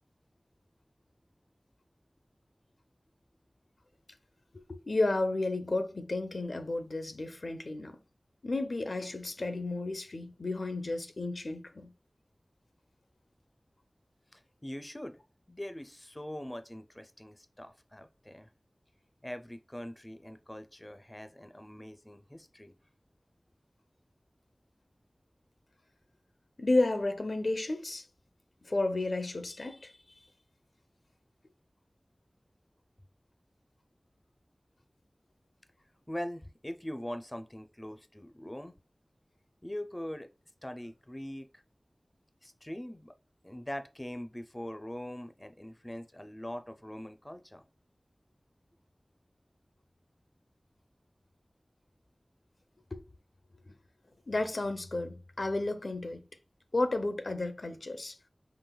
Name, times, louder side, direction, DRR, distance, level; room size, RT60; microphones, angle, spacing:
voice 1, 4.7-8.0 8.4-11.9 26.6-28.0 28.6-29.9 52.9-53.0 54.3-56.2 56.7-58.2, left 2 dB, 75° left, 0.5 m, -32 dB
voice 2, 14.3-15.2 15.5-18.5 19.2-22.8 36.1-38.7 39.6-40.3 40.6-41.6 42.4-43.1 43.4-47.6, left 1 dB, 20° left, 0.4 m, -42 dB
5.1 x 3.8 x 2.2 m
wide cardioid pair, 45°, 0 cm